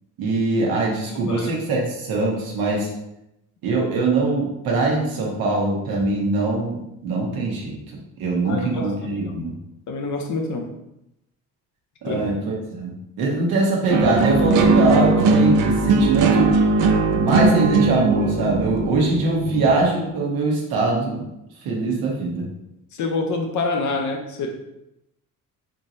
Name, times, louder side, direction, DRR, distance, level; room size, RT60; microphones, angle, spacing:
voice 1, 0.2-2.9 3.6-7.8 8.2-9.5 12.0-16.6 17.1-21.2 21.6-22.5, right 2 dB, 80° right, -2 dB, 1.0 m, -22 dB
voice 2, 1.1-1.5 8.4-9.3 9.9-10.7 12.0-12.2 22.9-24.5, left 3 dB, 55° left, 3 dB, 0.6 m, -27 dB
sound 1, 13.9-19.9, right 3 dB, 60° right, 0.5 m, -19 dB
3.7 x 2.9 x 2.5 m, 0.85 s
supercardioid pair, 80°, 35 cm